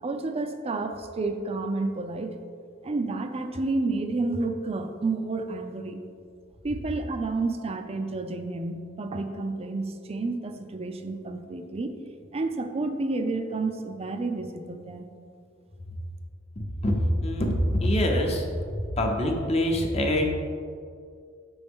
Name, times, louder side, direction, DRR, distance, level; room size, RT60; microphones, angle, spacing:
voice 1, 0.0-2.3 2.8-6.0 6.6-12.0 12.3-15.1, right 3 dB, 30° right, 6 dB, 0.4 m, -30 dB
voice 2, 16.6-16.9 17.2-18.5 18.7-20.3, left 1 dB, 35° left, 2 dB, 0.8 m, -25 dB
6.7 x 5.4 x 3.6 m, 2.2 s
head